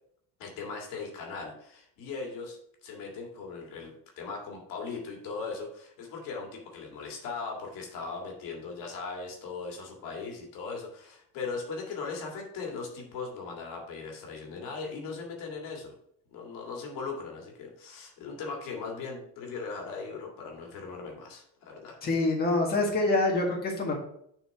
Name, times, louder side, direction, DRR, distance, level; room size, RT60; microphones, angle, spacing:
voice 1, 0.4-15.9 16.3-22.0, left 4 dB, 70° left, 1 dB, 2.0 m, -39 dB
voice 2, 22.0-23.9, left 2 dB, 25° left, -1 dB, 1.7 m, -26 dB
6.8 x 4.4 x 4.6 m, 0.70 s
cardioid pair, 115°, 35 cm